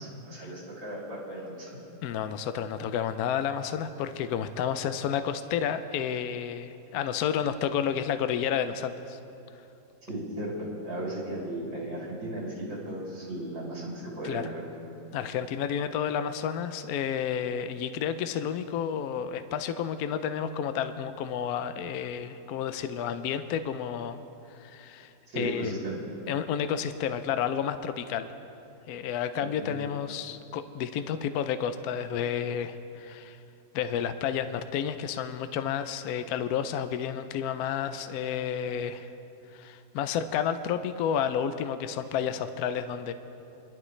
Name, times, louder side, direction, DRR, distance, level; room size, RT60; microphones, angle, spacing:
voice 1, 0.0-1.8 10.1-14.6 25.3-26.0 29.6-29.9, right 1 dB, 75° right, -6 dB, 4.0 m, -36 dB
voice 2, 2.0-9.2 14.2-14.4 15.1-24.2 24.5-25.7 26.3-28.3 28.9-33.4 33.7-39.1 39.5-43.1, left 8 dB, 75° left, 10 dB, 0.9 m, -31 dB
23.5 x 12.0 x 3.2 m, 2.8 s
omnidirectional pair, 2.0 m